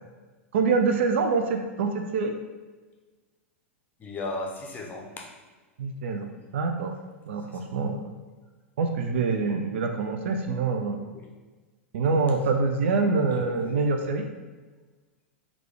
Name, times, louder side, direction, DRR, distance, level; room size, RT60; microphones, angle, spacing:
voice 1, 0.5-2.4 5.8-6.3 6.5-6.9 7.3-8.1 8.8-11.0 11.9-14.3, right 4 dB, 60° right, 4 dB, 0.4 m, -25 dB
voice 2, 4.0-5.3 7.5-7.9 11.0-11.3 13.3-13.8, left 2 dB, 25° left, 0 dB, 0.6 m, -37 dB
3.5 x 2.4 x 3.3 m, 1.3 s
figure-of-eight pair, 95°, 7 cm